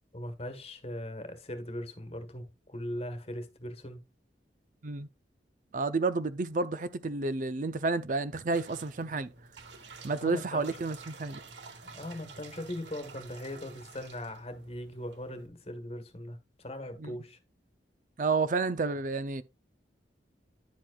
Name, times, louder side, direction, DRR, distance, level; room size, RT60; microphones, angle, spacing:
voice 1, 0.1-4.0 10.2-10.8 11.8-17.4, left 1 dB, 35° left, 1.5 m, -40 dB
voice 2, 5.7-9.3 10.0-11.4 17.0-17.1 18.2-19.4, right 3 dB, 45° right, 0.5 m, -30 dB
sound 1, 8.5-15.5, right 4 dB, 90° right, 1.4 m, -50 dB
10.5 x 7.4 x 2.4 m
head